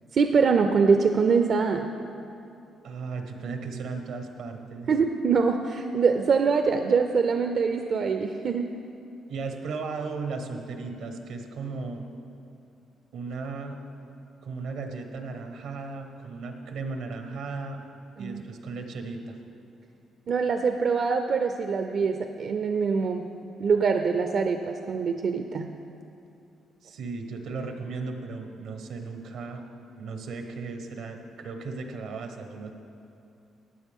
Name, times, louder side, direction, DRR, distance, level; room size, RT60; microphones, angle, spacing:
voice 1, 0.1-1.9 4.9-8.7 18.2-18.4 20.3-23.2 23.6-25.7, right 5 dB, 55° right, 6 dB, 0.5 m, -24 dB
voice 2, 2.8-4.9 9.3-12.0 13.1-13.8 14.4-17.8 18.2-19.4 26.8-29.6 30.0-32.7, right 4 dB, 80° right, 5 dB, 1.1 m, -36 dB
15.5 x 9.3 x 3.6 m, 2.6 s
cardioid pair, 90°, 0 cm